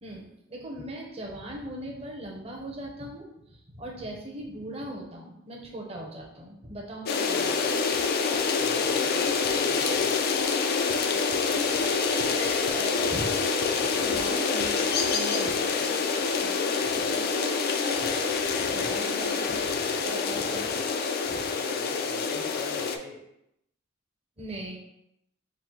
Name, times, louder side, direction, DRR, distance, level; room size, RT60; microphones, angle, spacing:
voice 1, 0.0-7.6 7.9-8.0 11.1-11.8 12.3-16.5 17.0-20.9 21.3-21.4 24.4-24.8, right 1 dB, 30° right, -1 dB, 0.8 m, -40 dB
sound 1, 7.1-23.0, left 5 dB, 50° left, 0.3 m, -26 dB
sound 2, 7.9-8.0 8.3-8.5 8.8-8.9 9.4-9.5 9.9-10.0 10.4-10.5 10.9-11.4 11.8-11.9 12.2-15.8, right 1 dB, 50° right, 0.5 m, -50 dB
voice 2, 8.6-10.4 16.8-17.2 21.3-23.2, left 2 dB, 80° left, -1 dB, 1.0 m, -44 dB
3.9 x 2.1 x 4.5 m, 0.79 s
head